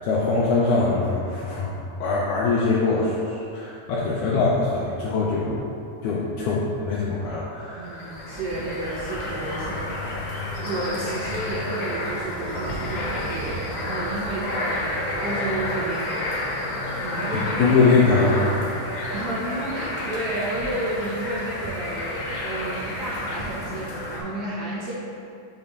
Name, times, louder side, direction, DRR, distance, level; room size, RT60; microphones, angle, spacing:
voice 1, 0.0-1.7 2.0-3.1 3.5-5.7 6.0-8.1 17.6-18.5, left 3 dB, 90° left, -5 dB, 1.7 m, -22 dB
voice 2, 7.8-18.0 19.1-24.9, right 2 dB, 70° right, -7 dB, 1.7 m, -32 dB
sound 1, 7.9-24.2, left 1 dB, 65° left, 1.6 m, -30 dB
6.9 x 3.0 x 5.3 m, 2.5 s
omnidirectional pair, 4.2 m